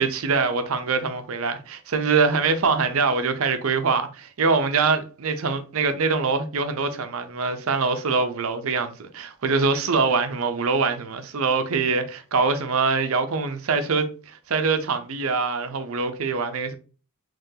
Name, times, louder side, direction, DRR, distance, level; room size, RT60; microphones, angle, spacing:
voice 1, 0.0-14.1 14.5-16.7, right 4 dB, 70° right, 0.6 m, -24 dB
3.7 x 3.1 x 2.7 m
head